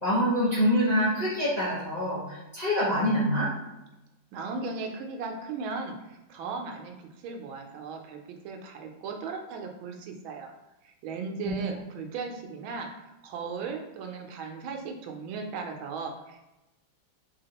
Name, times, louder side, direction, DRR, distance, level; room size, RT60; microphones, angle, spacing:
voice 1, 0.0-3.5 11.4-11.6, equal, 70° left, -9 dB, 0.3 m, -25 dB
voice 2, 4.3-6.9 7.2-10.5 10.8-16.5, right 4 dB, 80° right, 3 dB, 1.3 m, -37 dB
3.5 x 3.4 x 2.9 m, 0.96 s
omnidirectional pair, 2.3 m